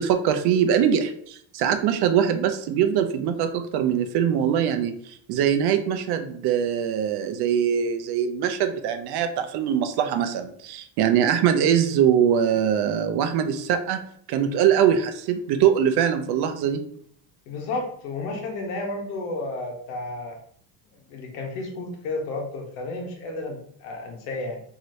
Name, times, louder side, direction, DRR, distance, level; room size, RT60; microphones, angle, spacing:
voice 1, 0.0-4.9 5.3-14.0 14.3-16.8, right 8 dB, 55° right, 8 dB, 0.5 m, -22 dB
voice 2, 17.5-20.4 21.1-24.6, left 2 dB, 80° left, 2 dB, 1.1 m, -32 dB
3.1 x 2.8 x 2.6 m, 0.64 s
cardioid pair, 125°, 49 cm